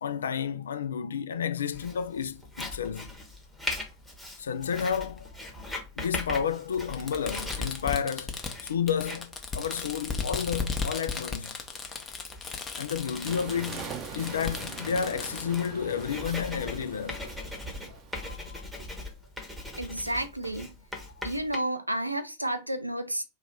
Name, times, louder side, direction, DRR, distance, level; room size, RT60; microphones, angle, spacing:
voice 1, 0.0-3.1 4.4-5.3 6.0-8.4 8.6-11.5 12.8-17.2 17.9-18.6 21.2-21.3, left 7 dB, 65° left, 0.3 m, -31 dB
Writing, 1.7-21.6, left 1 dB, ahead, 1.0 m, -41 dB
Fireworks, 2.6-2.7 3.8-3.9 5.2-5.3 6.9-15.7, left 4 dB, 20° left, 0.7 m, -36 dB
sound 1, 13.3-18.4, right 7 dB, 35° right, 0.6 m, -43 dB
voice 2, 19.8-20.7 21.2-23.2, right 1 dB, 85° right, 0.4 m, -31 dB
2.9 x 2.3 x 4.0 m
figure-of-eight pair, 90°, 0 cm